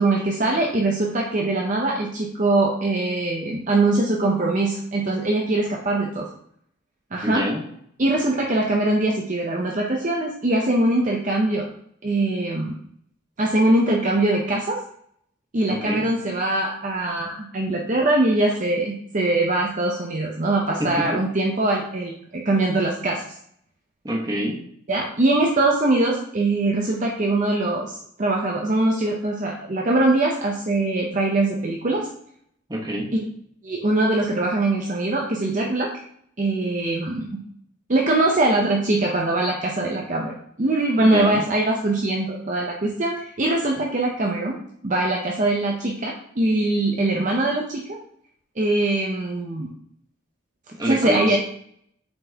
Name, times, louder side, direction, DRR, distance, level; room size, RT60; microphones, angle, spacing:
voice 1, 0.0-6.3 7.1-7.5 8.0-11.7 12.0-12.7 13.4-14.8 15.5-23.2 24.9-32.1 33.1-33.3 33.6-35.9 36.4-37.3 37.9-44.6 44.8-48.0 48.6-49.7 50.8-51.4, right 2 dB, 40° right, -1 dB, 0.7 m, -22 dB
voice 2, 7.2-7.6 15.7-16.1 20.8-21.2 24.0-24.6 32.7-33.1 41.0-41.4 50.8-51.4, equal, 20° right, -1 dB, 1.1 m, -26 dB
7.7 x 4.4 x 2.9 m, 0.66 s
head